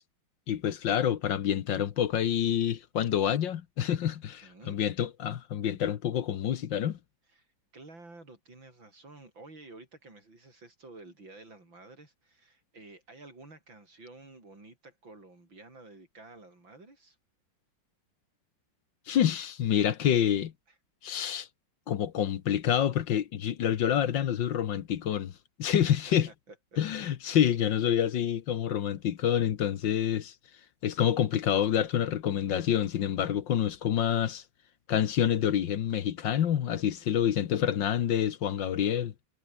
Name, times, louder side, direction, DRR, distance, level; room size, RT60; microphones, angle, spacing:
voice 1, 0.5-7.0 19.1-20.5 21.0-21.5 21.9-25.3 25.6-26.3 26.8-30.3 30.8-34.4 34.9-39.1, left 10 dB, 65° left, 1.7 m, -27 dB
voice 2, 4.4-4.8 7.3-7.5 7.7-17.2 20.7-20.8 26.1-26.8 36.9-37.3 37.6-37.7, right 2 dB, 70° right, 7.3 m, -51 dB
omnidirectional pair, 2.2 m